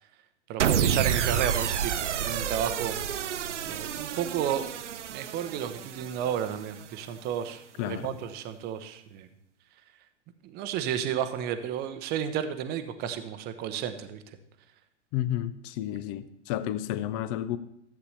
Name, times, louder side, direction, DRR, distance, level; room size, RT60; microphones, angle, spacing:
voice 1, 0.5-3.3 3.7-4.6 5.1-9.3 10.4-14.2, right 9 dB, 25° right, 0.8 m, -32 dB
sound 1, 0.6-6.9, right 9 dB, 75° right, 0.5 m, -29 dB
voice 2, 7.8-8.2 15.1-17.6, left 12 dB, 30° left, 0.5 m, -31 dB
13.5 x 8.1 x 3.3 m
figure-of-eight pair, 100°, 36 cm